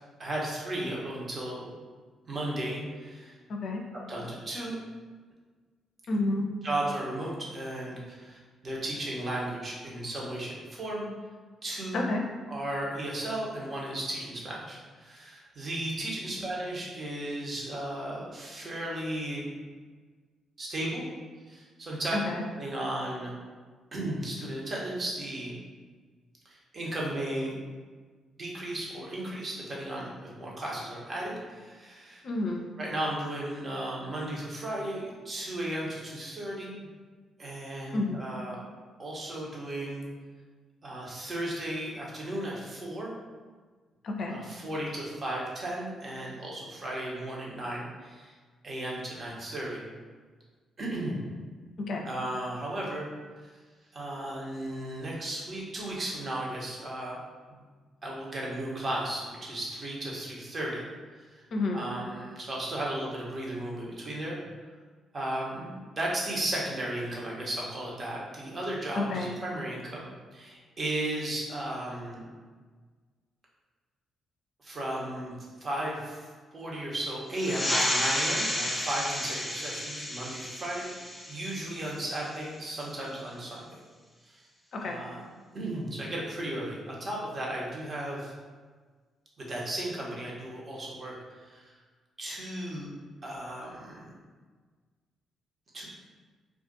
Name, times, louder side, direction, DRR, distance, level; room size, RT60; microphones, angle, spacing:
voice 1, 0.2-1.7 2.3-3.4 3.9-4.8 6.6-11.1 11.6-12.0 12.5-19.4 20.6-21.1 21.5-22.2 22.5-23.3 23.9-25.6 26.4-27.6 28.4-32.2 32.8-36.9 37.4-38.6 39.0-40.1 40.8-43.2 44.2-48.3 48.6-49.8 50.8-51.2 52.0-53.1 53.9-57.6 58.0-60.8 61.2-61.4 61.7-64.4 65.1-72.3 74.6-83.7 84.2-84.4 84.8-85.2 85.5-88.3 89.4-91.8 92.2-92.9 93.2-94.1 95.7-95.9, right 1 dB, 45° right, -4 dB, 1.0 m, -35 dB
voice 2, 3.5-3.8 6.1-6.4 11.9-12.2 22.1-22.4 32.2-32.6 37.9-38.2 44.0-44.3 51.9-52.0 61.5-61.8 69.0-69.3 84.7-85.0, left 2 dB, 60° left, 1 dB, 0.5 m, -29 dB
sound 1, 77.3-82.4, left 1 dB, 15° left, 0.7 m, -32 dB
2.5 x 2.4 x 3.9 m, 1.5 s
hypercardioid pair, 45°, 0 cm